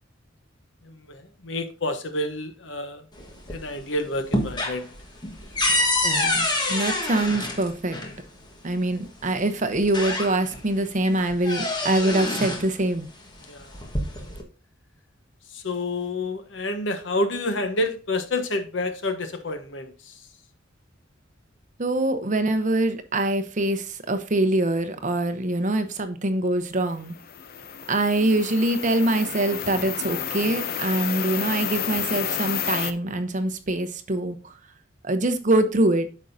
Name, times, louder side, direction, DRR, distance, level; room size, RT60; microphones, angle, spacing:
voice 1, 0.8-3.0 3.5-4.9 5.7-5.9 13.5-13.8 15.5-20.2, left 2 dB, 65° left, 1.0 m, -29 dB
sound 1, 3.2-3.8 4.1-8.1 9.2-9.3 9.7-10.7 11.0-12.7 13.6-14.4, left 2 dB, 20° left, 1.3 m, -26 dB
voice 2, 6.0-8.0 8.6-13.1 21.8-27.1 27.9-34.6 35.0-36.1, right 1 dB, 40° right, 0.8 m, -24 dB
sound 2, 27.0-32.9, left 8 dB, 50° left, 0.6 m, -31 dB
9.0 x 6.3 x 2.7 m
head